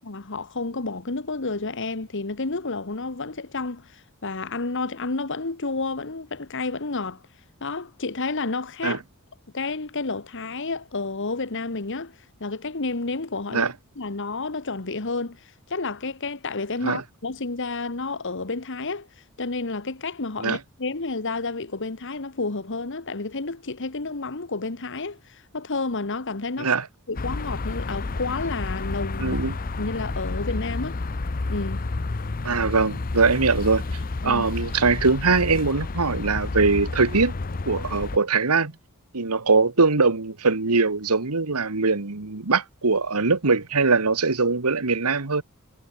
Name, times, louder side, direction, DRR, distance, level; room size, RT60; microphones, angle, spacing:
voice 1, 0.0-7.2 7.6-9.0 9.5-13.7 14.0-19.1 19.4-26.7 27.1-31.0 31.5-31.8 34.2-34.4, left 3 dB, 55° left, 1.4 m, -30 dB
sound 1, 27.2-38.2, left 3 dB, 40° left, 0.7 m, -30 dB
voice 2, 29.2-29.6 32.4-33.8 34.2-37.3 37.6-38.7 39.1-45.4, right 4 dB, 85° right, 1.6 m, -22 dB
head